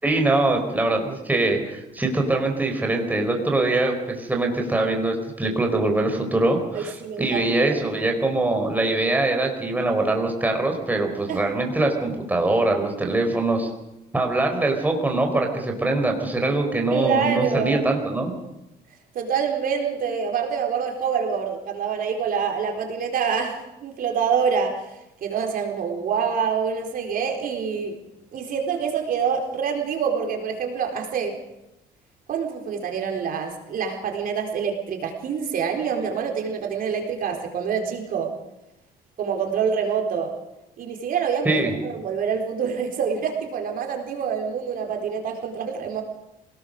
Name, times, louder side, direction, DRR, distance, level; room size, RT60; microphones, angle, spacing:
voice 1, 0.0-13.7 14.1-18.3 41.4-41.7, right 2 dB, 10° right, 2 dB, 4.4 m, -23 dB
voice 2, 6.7-7.8 11.3-11.4 16.9-17.9 19.1-24.9 25.2-28.0 28.3-31.4 32.3-38.3 39.2-40.3 40.8-46.0, right 6 dB, 60° right, 3 dB, 4.2 m, -26 dB
26.0 x 18.5 x 6.7 m, 0.92 s
cardioid pair, 110°, 17 cm